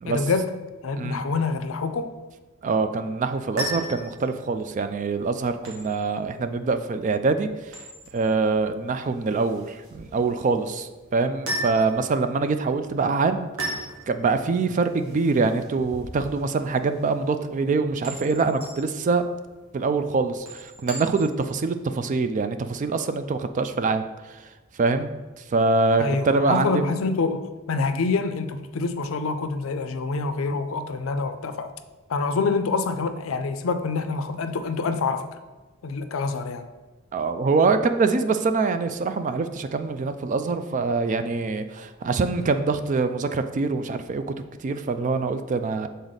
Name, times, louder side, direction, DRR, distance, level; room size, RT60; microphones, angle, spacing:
voice 1, 0.0-0.5 0.8-2.1 26.0-27.4 27.7-31.7 32.1-35.3 35.8-36.7, left 4 dB, 65° left, 9 dB, 0.5 m, -26 dB
voice 2, 2.6-7.7 8.1-19.3 19.7-26.9 37.1-44.3 44.6-45.9, right 4 dB, 35° right, 9 dB, 0.3 m, -24 dB
sound 1, 3.3-21.5, right 1 dB, 75° right, 1.6 m, -38 dB
6.4 x 4.0 x 4.0 m, 1.2 s
head